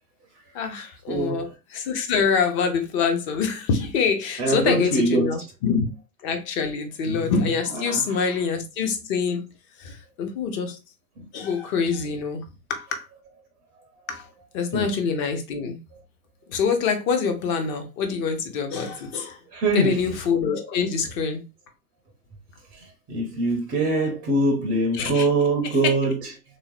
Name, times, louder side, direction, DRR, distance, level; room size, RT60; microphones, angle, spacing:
voice 1, 0.5-5.9 6.2-9.5 9.8-10.8 11.3-12.4 12.7-13.1 14.1-14.3 14.5-15.8 16.5-19.4 19.7-21.4 25.0-25.3, left 5 dB, 25° left, 0.7 m, -25 dB
voice 2, 1.1-1.4 4.4-5.3 7.7-8.2 14.7-14.9 19.5-20.0 22.7-26.3, right 2 dB, 20° right, 0.6 m, -23 dB
3.4 x 2.8 x 3.0 m
figure-of-eight pair, 100°, 46 cm